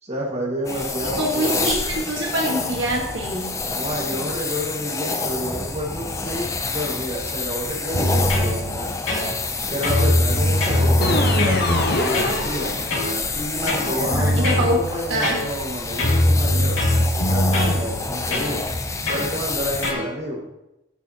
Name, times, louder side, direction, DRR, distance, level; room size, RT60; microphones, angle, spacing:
voice 1, 0.0-1.7 3.7-9.0 9.7-12.7 13.3-16.8 17.3-18.6 19.1-20.4, equal, 30° right, -3 dB, 1.8 m, -29 dB
sound 1, 0.6-19.9, left 3 dB, 15° left, 0.4 m, -28 dB
voice 2, 1.2-3.5 14.0-14.8 15.1-15.4, right 1 dB, 65° right, -1 dB, 1.5 m, -24 dB
sound 2, 7.9-8.5 9.1-9.6 9.8-11.6 12.1-12.4 12.9-13.2 13.7-14.7 15.2-15.7 16.0-17.8 18.3-18.5 19.1-19.3 19.8-20.1, left 1 dB, 80° left, 2.4 m, -21 dB
sound 3, 11.0-13.3, left 2 dB, 50° left, 1.1 m, -23 dB
10.5 x 6.9 x 2.9 m, 0.92 s
head